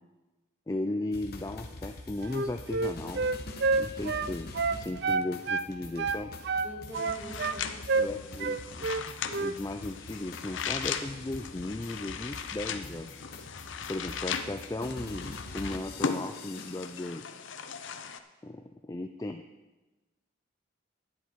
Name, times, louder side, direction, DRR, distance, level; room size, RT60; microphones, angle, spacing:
voice 1, 0.7-3.2 3.8-6.3 8.0-8.9 9.4-13.2 13.9-17.2 18.4-19.4, left 2 dB, 15° left, 6 dB, 0.4 m, -36 dB
sound 1, 1.1-17.0, left 2 dB, 50° left, 1.2 m, -45 dB
Wind instrument woodwind instrument, 2.2-5.7 6.0-7.6 7.9-8.1 8.4-9.0 9.3-9.6, right 4 dB, 55° right, 0.4 m, -29 dB
voice 2, 6.6-8.2, equal, 10° right, -6 dB, 3.4 m, -45 dB
sound 2, 6.9-18.2, left 6 dB, 70° left, 0.7 m, -38 dB
11.0 x 10.0 x 4.7 m, 1.1 s
head